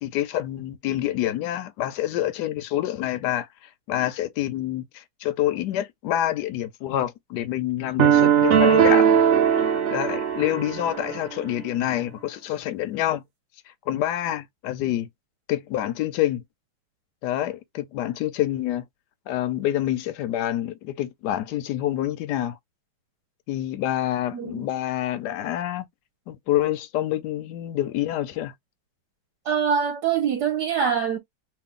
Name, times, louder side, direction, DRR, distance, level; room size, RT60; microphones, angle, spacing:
voice 1, 0.0-3.5 3.9-9.1 9.9-13.2 13.9-15.1 15.5-16.4 17.2-18.8 19.3-22.6 23.5-25.9 26.3-28.5, left 13 dB, 75° left, 1.0 m, -27 dB
sound 1, 8.0-11.2, right 8 dB, 90° right, 0.6 m, -19 dB
voice 2, 24.3-24.6 29.4-31.2, right 7 dB, 60° right, 1.4 m, -24 dB
3.3 x 2.4 x 3.6 m
omnidirectional pair, 2.2 m